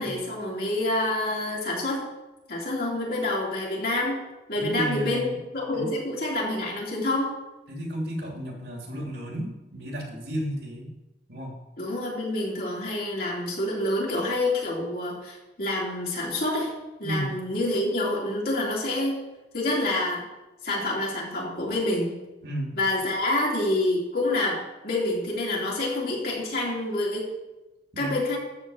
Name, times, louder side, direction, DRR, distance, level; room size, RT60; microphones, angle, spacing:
voice 1, 0.0-2.0 2.5-4.2 4.5-7.3 11.8-16.7 17.0-19.2 19.5-20.2 20.6-22.1 22.7-27.3 28.0-28.4, left 1 dB, 60° left, -4 dB, 3.5 m, -27 dB
voice 2, 4.6-5.4 5.7-5.9 7.7-10.9 11.3-11.5 17.0-17.3 22.4-22.7 27.9-28.2, equal, 65° right, -1 dB, 2.8 m, -33 dB
13.0 x 4.4 x 7.8 m, 1.0 s
head